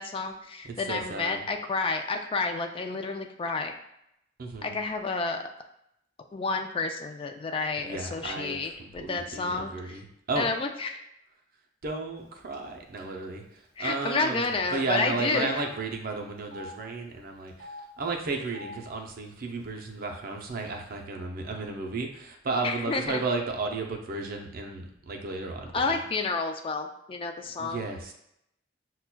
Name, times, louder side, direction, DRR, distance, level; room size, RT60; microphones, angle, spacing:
voice 1, 0.0-3.7 4.6-5.4 6.3-10.0 10.4-10.9 13.8-15.7 22.6-23.2 25.7-27.9, left 3 dB, 30° left, 5 dB, 0.3 m, -30 dB
voice 2, 0.6-1.4 4.4-4.7 7.8-10.5 11.8-13.4 13.8-25.7 27.6-28.1, right 3 dB, 50° right, 2 dB, 0.5 m, -33 dB
Telephone, 12.5-12.7 13.0-13.1 14.0-14.2 14.4-14.5 15.3-15.6 16.4-16.7 17.5-17.8 18.4-18.7 19.6-19.7 19.9-20.6, left 2 dB, 50° left, 0.9 m, -45 dB
5.7 x 2.2 x 2.2 m, 0.78 s
head